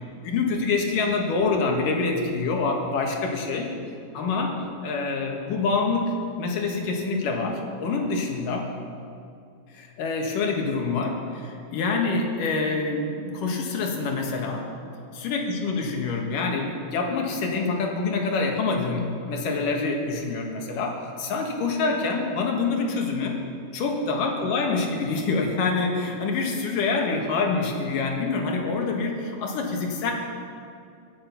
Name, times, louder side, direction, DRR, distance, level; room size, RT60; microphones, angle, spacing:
voice 1, 0.2-3.7 4.1-4.6 4.8-8.7 9.7-14.7 15.2-23.4 23.7-30.1, left 4 dB, 60° left, 1 dB, 2.7 m, -26 dB
23.0 x 9.1 x 5.9 m, 2.4 s
omnidirectional pair, 5.1 m